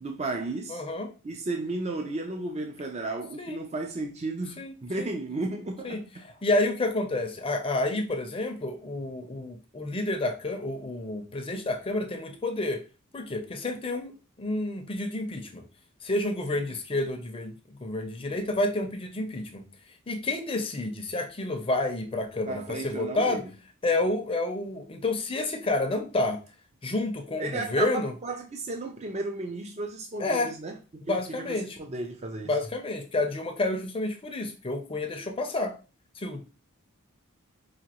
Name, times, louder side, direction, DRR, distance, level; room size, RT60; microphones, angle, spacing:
voice 1, 0.0-0.8 1.2-6.2 16.6-16.7 22.5-23.5 27.4-30.8 31.1-32.5, right 2 dB, 30° right, 0.5 m, -34 dB
voice 2, 0.7-1.1 3.4-3.6 4.6-5.1 5.8-6.0 6.4-12.8 13.1-15.6 16.0-17.5 17.8-19.6 20.1-23.4 23.8-26.4 26.8-28.1 30.2-30.5 31.1-31.8 32.5-35.7 36.2-36.4, left 2 dB, 25° left, 0.6 m, -29 dB
5.0 x 2.6 x 2.9 m
head